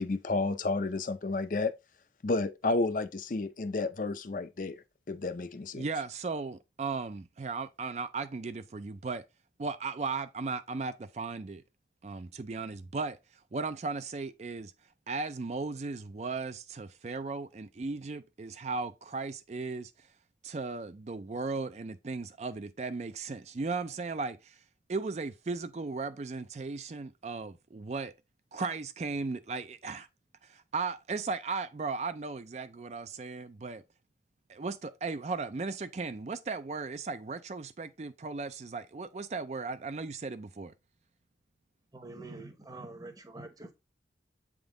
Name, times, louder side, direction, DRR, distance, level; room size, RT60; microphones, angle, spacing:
voice 1, 0.0-1.7 2.2-5.8, left 3 dB, 45° left, 0.5 m, -31 dB
voice 2, 5.7-9.2 9.6-11.6 12.0-13.2 13.5-14.7 15.1-20.1 20.4-24.6 24.9-28.1 28.5-30.1 30.4-33.8 34.5-40.7, right 4 dB, 40° right, 0.4 m, -36 dB
voice 3, 41.9-43.7, right 2 dB, 20° right, 0.9 m, -45 dB
8.0 x 3.7 x 3.8 m
head